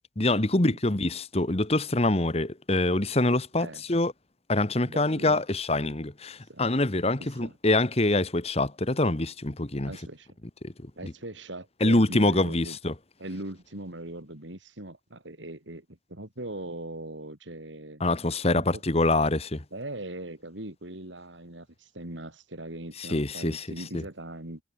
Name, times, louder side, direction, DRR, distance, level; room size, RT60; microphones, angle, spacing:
voice 1, 0.2-4.1 4.5-9.9 10.6-10.7 11.0-11.1 11.8-12.9 18.0-19.6 23.0-23.7 23.9-24.0, left 2 dB, 35° left, 1.5 m, -25 dB
voice 2, 4.9-5.4 6.5-6.6 7.2-7.5 9.8-10.3 11.0-12.8 13.2-18.0 18.6-18.8 19.7-24.6, right 1 dB, 90° right, 4.3 m, -40 dB
head